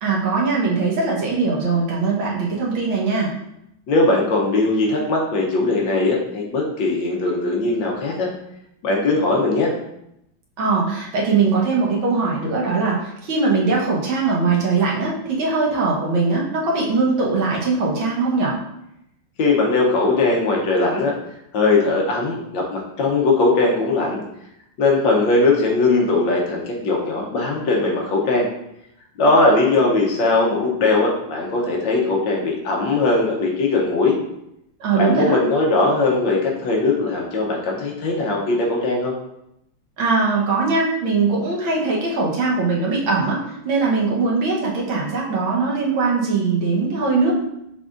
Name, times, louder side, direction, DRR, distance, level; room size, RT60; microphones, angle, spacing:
voice 1, 0.0-3.3 10.6-18.6 34.8-35.4 40.0-43.4 43.7-47.3, right 4 dB, 75° right, -3 dB, 1.8 m, -21 dB
voice 2, 3.9-8.3 8.8-9.7 19.4-21.1 21.5-24.2 24.8-28.5 29.2-34.2 34.9-39.1, left 3 dB, 70° left, -1 dB, 1.5 m, -19 dB
6.3 x 3.4 x 2.5 m, 0.80 s
omnidirectional pair, 2.2 m